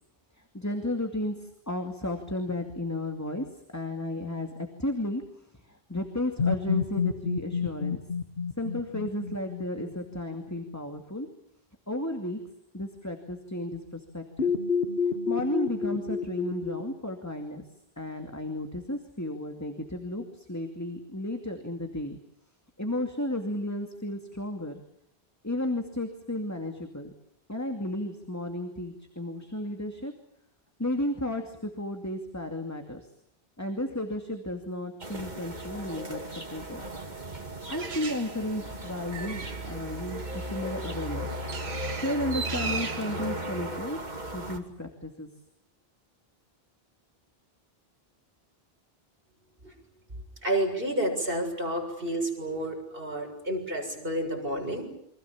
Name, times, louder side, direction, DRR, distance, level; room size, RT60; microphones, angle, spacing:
voice 1, 0.4-8.0 8.6-11.3 11.9-12.4 12.7-14.5 15.3-17.6 18.0-22.2 22.8-24.8 25.4-27.1 27.5-30.1 30.8-33.1 33.6-36.8 37.7-41.3 41.9-44.0 44.3-45.3, left 1 dB, 15° left, 4 dB, 2.4 m, -33 dB
sound 1, 6.4-10.4 14.4-16.8, left 5 dB, 75° left, 2.0 m, -29 dB
sound 2, 35.0-44.6, right 1 dB, 45° right, 3.0 m, -37 dB
Bird, 37.7-44.2, right 4 dB, 90° right, 1.8 m, -39 dB
voice 2, 50.4-54.9, right 1 dB, 60° right, 2 dB, 7.2 m, -30 dB
29.0 x 25.0 x 7.3 m, 0.74 s
omnidirectional pair, 1.0 m